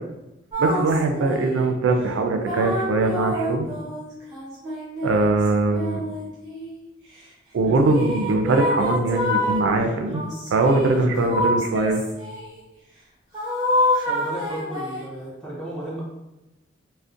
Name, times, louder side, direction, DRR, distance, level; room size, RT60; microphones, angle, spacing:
sound 1, 0.5-1.7 2.5-6.8 7.8-9.6 10.1-12.5 13.3-15.2, left 1 dB, 20° right, 0.9 m, -27 dB
voice 1, 0.6-3.7 5.0-6.0 7.5-10.2 10.5-12.0, right 2 dB, 85° right, 5 dB, 0.3 m, -21 dB
voice 2, 14.1-16.0, right 1 dB, 5° left, -8 dB, 0.5 m, -34 dB
2.5 x 2.1 x 2.4 m, 0.96 s
head